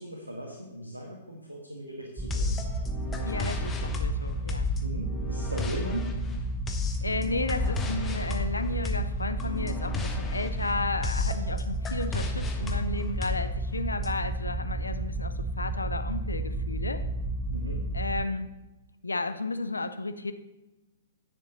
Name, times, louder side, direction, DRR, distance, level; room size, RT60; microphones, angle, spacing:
voice 1, 0.0-2.6 4.8-6.1 17.5-17.8, right 1 dB, 85° right, -1 dB, 1.5 m, -38 dB
sound 1, 2.2-18.2, right 2 dB, 10° right, 0.5 m, -32 dB
sound 2, 2.3-14.1, left 4 dB, 15° left, 1.0 m, -34 dB
voice 2, 3.2-4.7 7.0-17.0 17.9-18.5 19.0-20.3, left 2 dB, 80° left, 10 dB, 0.7 m, -33 dB
10.0 x 6.5 x 4.0 m, 1.0 s
figure-of-eight pair, 115°, 0 cm